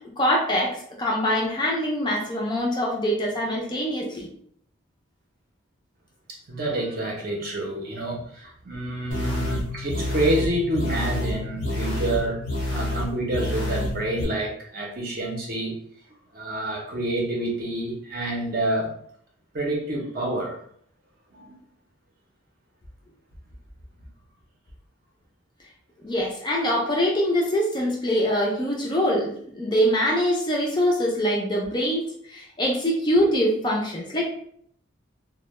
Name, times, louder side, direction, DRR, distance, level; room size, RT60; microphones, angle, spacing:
voice 1, 0.2-4.3 26.0-34.3, equal, 20° left, -2 dB, 0.4 m, -24 dB
voice 2, 6.3-12.4 12.7-15.8 16.3-18.9 19.5-20.6 21.3-21.6, right 1 dB, 45° right, -1 dB, 0.6 m, -28 dB
sound 1, 9.1-14.2, left 1 dB, 80° left, 0.9 m, -28 dB
2.1 x 2.1 x 3.0 m, 0.64 s
head